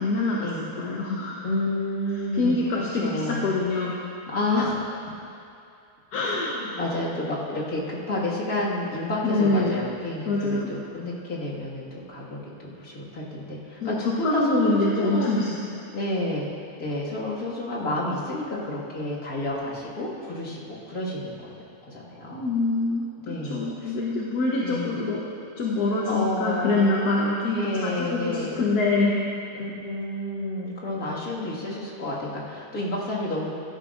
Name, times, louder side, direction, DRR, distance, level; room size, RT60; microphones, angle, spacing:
voice 1, 0.0-1.4 2.3-4.0 6.1-6.5 9.2-9.8 10.3-10.7 13.8-15.8 22.3-25.2 25.6-29.2, left 2 dB, 85° left, -4 dB, 1.5 m, -25 dB
voice 2, 1.4-3.5 4.3-5.0 6.2-15.4 15.9-16.5 16.8-21.5 21.9-22.5 23.2-23.9 24.6-25.0 26.1-26.8 27.5-28.6 29.5-33.5, left 1 dB, 70° left, -6 dB, 2.4 m, -30 dB
16.5 x 11.5 x 2.5 m, 2.5 s
omnidirectional pair, 1.6 m